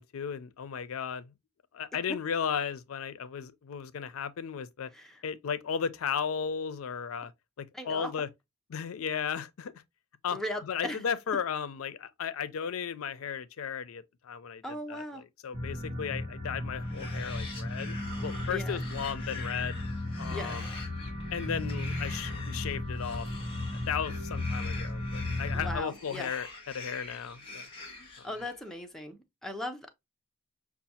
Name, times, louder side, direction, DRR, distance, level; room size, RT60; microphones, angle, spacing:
voice 1, 0.0-1.3 1.7-4.9 5.2-7.3 7.6-8.3 8.7-9.7 10.2-10.4 10.7-14.6 14.9-18.0 18.2-19.8 20.2-20.6 21.3-23.5 23.9-27.7 28.2-28.3, left 7 dB, 85° left, 0.4 m, -35 dB
voice 2, 4.9-5.2 7.7-8.1 10.3-11.1 14.6-15.2 18.5-18.8 20.3-20.6 25.5-26.3 28.2-29.9, left 1 dB, ahead, 0.6 m, -38 dB
sound 1, 15.5-25.8, left 1 dB, 60° right, 1.2 m, -35 dB
sound 2, 16.7-28.7, left 3 dB, 25° left, 1.3 m, -45 dB
5.6 x 2.3 x 2.7 m
head